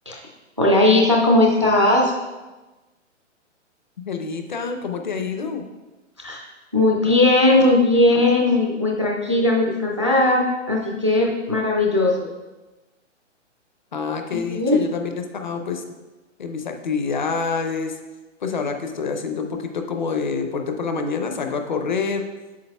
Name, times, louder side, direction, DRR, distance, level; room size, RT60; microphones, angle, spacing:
voice 1, 0.6-2.1 6.2-6.4 6.7-12.3 14.3-14.8, left 2 dB, 25° right, -1 dB, 0.3 m, -18 dB
voice 2, 4.1-5.6 13.9-15.8 16.4-18.0 18.4-22.3, left 5 dB, 40° left, 5 dB, 0.6 m, -27 dB
8.4 x 6.5 x 2.2 m, 1.1 s
hypercardioid pair, 170°, 37 cm